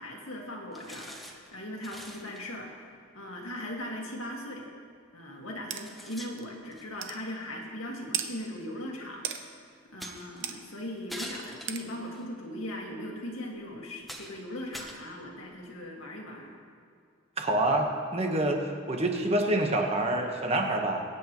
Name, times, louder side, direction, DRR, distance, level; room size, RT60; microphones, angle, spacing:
voice 1, 0.0-4.7 5.1-9.6 9.9-16.6, left 1 dB, 90° left, -1 dB, 2.0 m, -39 dB
sound 1, 0.7-1.5 1.8-2.4 3.9-4.0 5.0-5.1 5.7-7.0 8.2-8.3 10.0-10.5 11.1-12.3 12.9-13.0 13.6-13.7 14.0-14.4 14.7-15.7, equal, ahead, 0.9 m, -44 dB
sound 2, 5.7-5.8 6.4-6.5 7.0-7.2 8.1-8.3 9.2-9.4 10.4-10.6 11.7-11.8, right 10 dB, 65° right, 0.8 m, -33 dB
voice 2, 17.4-18.6 18.9-21.0, right 1 dB, 30° right, 2 dB, 1.3 m, -27 dB
23.5 x 8.3 x 3.1 m, 2.3 s
head